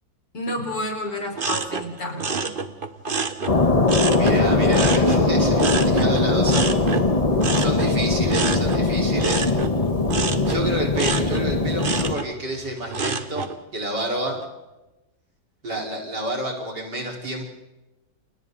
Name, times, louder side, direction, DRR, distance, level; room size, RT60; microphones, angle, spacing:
voice 1, 0.3-2.6, left 1 dB, 65° left, 2 dB, 5.1 m, -30 dB
sound 1, 1.4-4.4 4.7-13.6 14.0-14.4, right 4 dB, 35° right, 1.2 m, -29 dB
sound 2, 3.5-12.1, left 2 dB, 20° left, 1.2 m, -20 dB
voice 2, 4.1-7.0 7.5-9.5 10.5-14.4 15.6-17.4, right 1 dB, 65° right, -1 dB, 5.4 m, -29 dB
29.5 x 29.0 x 4.1 m, 1.0 s
omnidirectional pair, 2.0 m